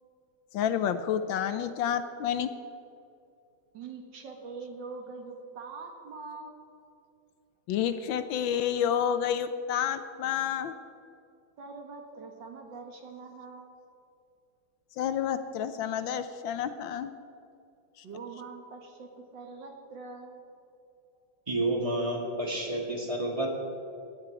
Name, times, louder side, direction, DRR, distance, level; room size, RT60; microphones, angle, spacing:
voice 1, 0.5-2.5 7.7-10.7 15.0-17.1, left 9 dB, 75° left, 10 dB, 1.4 m, -29 dB
voice 2, 3.7-6.7 11.6-13.8 18.0-20.4, right 4 dB, 65° right, 3 dB, 2.0 m, -43 dB
voice 3, 21.5-23.6, right 1 dB, 15° right, 0 dB, 1.7 m, -30 dB
16.5 x 11.0 x 4.7 m, 2.6 s
omnidirectional pair, 2.2 m